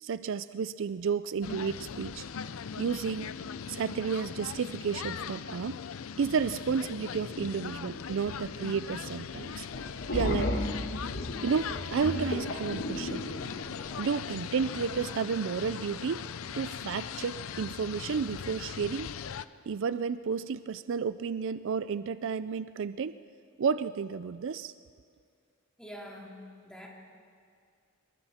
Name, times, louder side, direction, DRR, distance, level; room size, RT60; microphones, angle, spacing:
voice 1, 0.0-2.3 2.8-3.4 3.7-5.8 6.2-9.7 10.1-10.5 11.4-13.3 14.0-16.2 16.6-19.1 19.7-23.1 23.6-24.7, right 6 dB, 60° right, 14 dB, 0.4 m, -32 dB
sound 1, 1.4-19.5, left 7 dB, 70° left, 0.5 m, -40 dB
sound 2, 9.7-14.1, left 1 dB, 55° left, 1.6 m, -34 dB
voice 2, 25.8-26.9, equal, 5° left, -3 dB, 3.3 m, -45 dB
26.0 x 23.0 x 4.3 m, 2.3 s
head